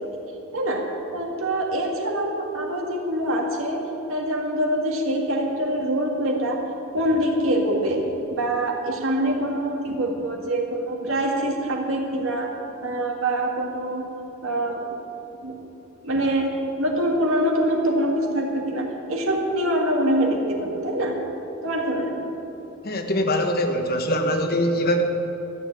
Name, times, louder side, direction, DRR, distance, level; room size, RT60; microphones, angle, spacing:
voice 1, 0.5-0.8 1.1-3.8 4.1-6.7 6.9-8.1 8.3-12.5 12.8-14.0 14.4-15.0 15.4-15.5 16.0-21.2 21.6-22.3, right 1 dB, 75° right, 1 dB, 2.0 m, -24 dB
voice 2, 22.8-25.0, equal, 45° left, 5 dB, 1.2 m, -23 dB
13.0 x 7.4 x 8.5 m, 3.0 s
head